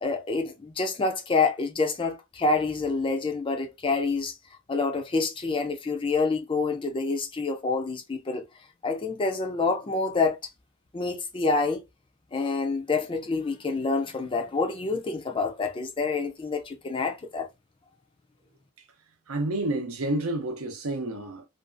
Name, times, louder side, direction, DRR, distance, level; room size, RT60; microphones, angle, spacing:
voice 1, 0.0-4.4 4.7-8.4 8.8-10.4 10.9-11.8 12.3-17.5, left 3 dB, 25° left, 0.4 m, -27 dB
voice 2, 19.3-21.5, right 2 dB, 80° right, 0.7 m, -29 dB
2.6 x 2.3 x 2.4 m
head